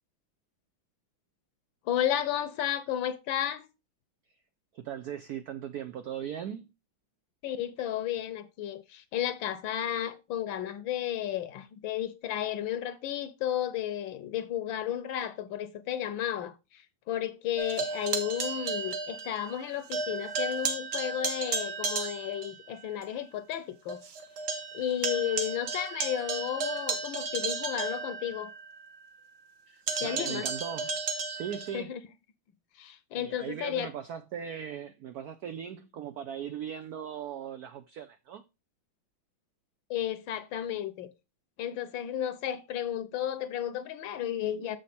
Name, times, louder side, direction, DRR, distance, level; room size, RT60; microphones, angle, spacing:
voice 1, 1.9-3.7 7.4-24.0 24.7-28.5 30.0-30.5 31.7-32.0 32.8-33.9 39.9-41.1 41.6-44.8, left 11 dB, 70° left, 1.4 m, -33 dB
voice 2, 4.7-6.7 29.7-31.0 31.3-31.9 33.1-38.4, right 9 dB, 90° right, 0.8 m, -39 dB
sound 1, 17.6-19.6 19.9-22.6 23.0-23.1 23.5-23.6 23.9-28.7 29.9-31.8, right 4 dB, 55° right, 1.6 m, -34 dB
7.2 x 6.4 x 4.2 m
omnidirectional pair, 2.3 m